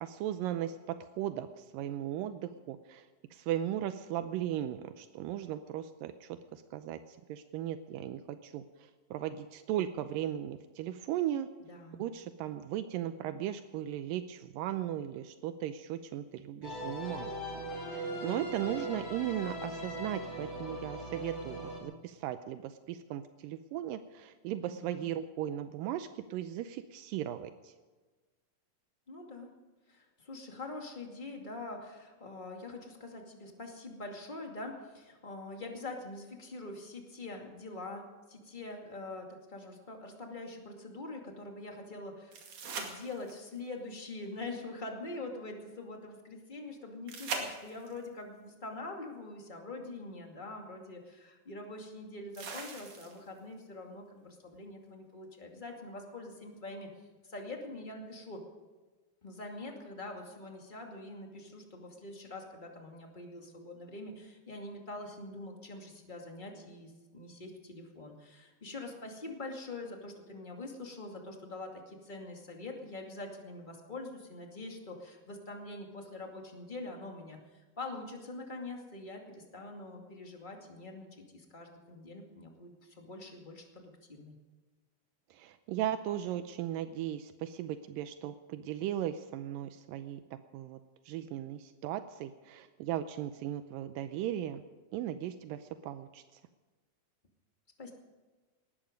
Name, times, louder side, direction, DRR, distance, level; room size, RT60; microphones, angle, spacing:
voice 1, 0.0-3.1 3.3-11.5 12.0-17.3 17.9-27.7 85.3-90.2 90.5-90.8 91.1-94.6 94.9-96.2, right 11 dB, 85° right, 10 dB, 2.3 m, -37 dB
voice 2, 11.6-12.1 24.6-25.1 29.1-29.5 29.9-56.9 57.2-58.4 59.2-77.4 77.8-84.4 97.8-97.9, left 2 dB, 15° left, 2 dB, 1.8 m, -44 dB
sound 1, 16.6-21.8, right 1 dB, 35° left, 4.8 m, -40 dB
sound 2, 42.3-43.6 47.1-48.1 50.0-50.1 52.3-53.4 56.3-56.4, right 4 dB, 60° right, 3.6 m, -41 dB
19.0 x 13.5 x 5.3 m, 1.3 s
omnidirectional pair, 4.0 m